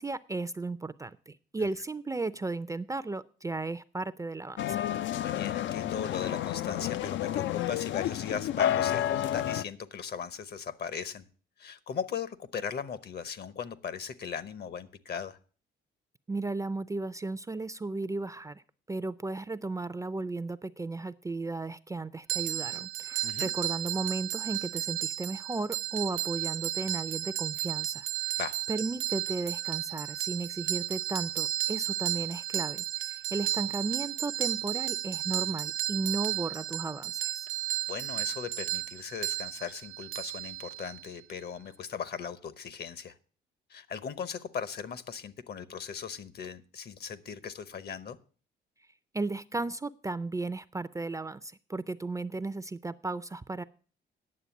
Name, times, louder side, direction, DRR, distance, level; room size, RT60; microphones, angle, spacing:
voice 1, 0.0-4.8 16.3-18.6 18.9-28.4 28.7-37.5 49.1-53.6, right 3 dB, 15° right, 15 dB, 0.4 m, -35 dB
sound 1, 4.6-9.6, left 11 dB, 70° left, 0.4 m, -30 dB
voice 2, 5.2-11.3 11.6-15.4 23.2-23.5 28.4-28.5 37.9-43.1 43.7-48.2, left 7 dB, 55° left, 16 dB, 0.9 m, -38 dB
sound 2, 22.3-41.1, right 16 dB, 85° right, 0.6 m, -33 dB
9.7 x 7.1 x 7.0 m, 0.41 s
cardioid pair, 90°, 20 cm